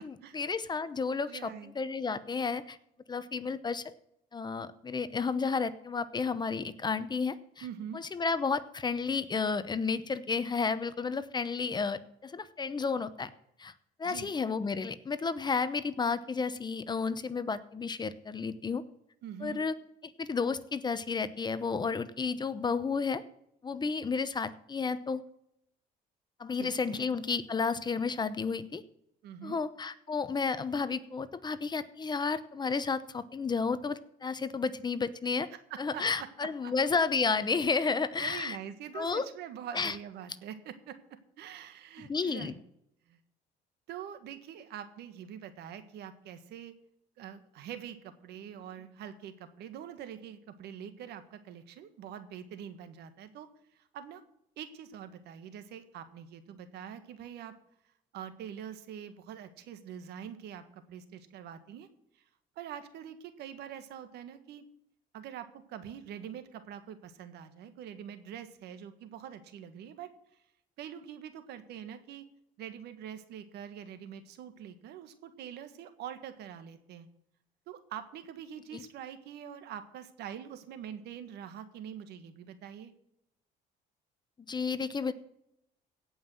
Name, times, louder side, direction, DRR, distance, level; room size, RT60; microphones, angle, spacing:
voice 1, 0.3-2.8 3.1-3.9 4.3-7.6 7.9-13.3 13.6-13.7 14.0-18.8 19.4-19.7 20.0-23.2 23.6-25.2 26.4-28.8 29.4-35.5 35.8-38.6 38.9-39.3 39.7-40.0 42.0-42.5 78.7-78.8 84.5-85.1, left 5 dB, 25° left, 14 dB, 0.8 m, -32 dB
voice 2, 1.3-1.7 7.6-8.0 14.0-14.3 19.2-19.6 26.5-27.0 29.2-29.6 35.5-36.7 37.7-41.0 41.4-42.6 43.1-43.2 43.9-46.7 47.2-53.5 53.7-54.2 54.6-57.5 58.1-61.9 62.1-62.2 62.5-64.6 65.1-70.1 70.8-72.2 72.6-77.1 77.7-82.9, right 9 dB, 75° right, 10 dB, 1.6 m, -44 dB
17.0 x 5.6 x 7.6 m, 0.77 s
cardioid pair, 110°, 17 cm